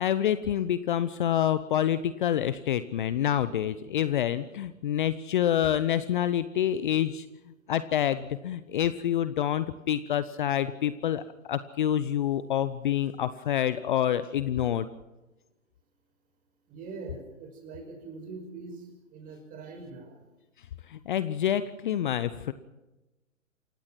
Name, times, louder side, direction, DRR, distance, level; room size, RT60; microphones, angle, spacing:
voice 1, 0.0-7.2 7.7-14.9 20.9-22.5, left 10 dB, 40° left, 14 dB, 0.9 m, -27 dB
voice 2, 16.7-18.8 19.1-20.2, right 4 dB, 20° right, 6 dB, 5.4 m, -42 dB
28.0 x 16.5 x 6.0 m, 1.0 s
figure-of-eight pair, 130°, 40 cm